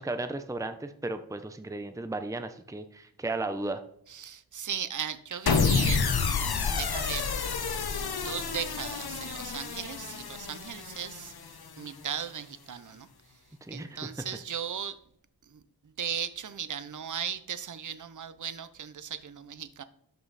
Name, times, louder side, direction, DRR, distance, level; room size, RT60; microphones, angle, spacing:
voice 1, 0.0-3.8 13.6-14.1, right 2 dB, 10° right, 9 dB, 0.8 m, -35 dB
voice 2, 4.1-6.0 6.8-7.3 8.1-13.1 13.7-15.0 15.5-15.6 16.0-19.8, right 8 dB, 50° right, 13 dB, 0.8 m, -37 dB
sound 1, 5.5-11.8, left 5 dB, 65° left, 1.0 m, -29 dB
12.5 x 5.5 x 4.1 m, 0.70 s
cardioid pair, 55°, 40 cm